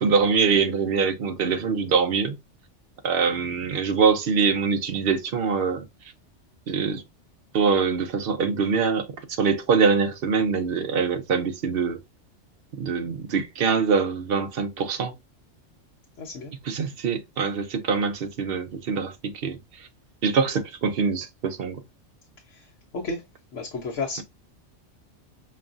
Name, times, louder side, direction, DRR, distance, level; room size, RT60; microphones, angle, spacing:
voice 1, 0.0-2.3 3.0-5.8 6.7-7.0 7.5-9.1 9.4-12.0 12.8-15.1 16.7-19.6 20.2-21.8, right 5 dB, 60° right, 0.8 m, -24 dB
voice 2, 16.2-16.5 22.5-23.2 23.5-24.2, left 3 dB, 80° left, 1.2 m, -33 dB
5.4 x 2.3 x 2.5 m
omnidirectional pair, 1.2 m